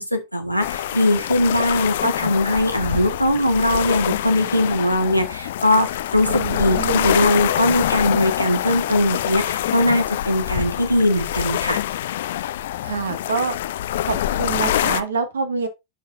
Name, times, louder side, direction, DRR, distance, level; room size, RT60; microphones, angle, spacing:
voice 1, 0.0-11.8, left 1 dB, 90° right, 1.4 m, -20 dB
sound 1, 0.6-15.0, left 12 dB, 55° left, 0.4 m, -25 dB
voice 2, 6.2-7.1 12.8-13.5 14.0-15.7, right 5 dB, 70° right, 1.6 m, -26 dB
9.9 x 5.6 x 2.5 m
figure-of-eight pair, 90°, 0 cm